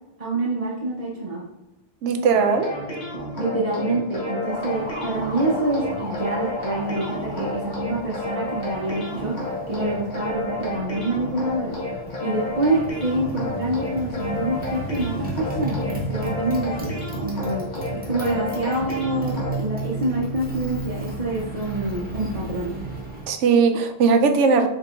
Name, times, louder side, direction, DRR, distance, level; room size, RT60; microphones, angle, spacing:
voice 1, 0.2-1.5 3.3-9.4 9.7-11.8 12.2-16.9 17.2-17.7 17.9-22.7, right 2 dB, 40° right, -5 dB, 0.6 m, -26 dB
voice 2, 2.0-2.7 23.3-24.7, right 5 dB, 90° right, 6 dB, 0.9 m, -18 dB
sound 1, 2.3-19.5, left 1 dB, 40° left, 1.1 m, -31 dB
Motorcycle, 4.3-23.3, right 1 dB, 10° right, 0.9 m, -34 dB
5.2 x 3.6 x 2.4 m, 1.0 s
omnidirectional pair, 1.2 m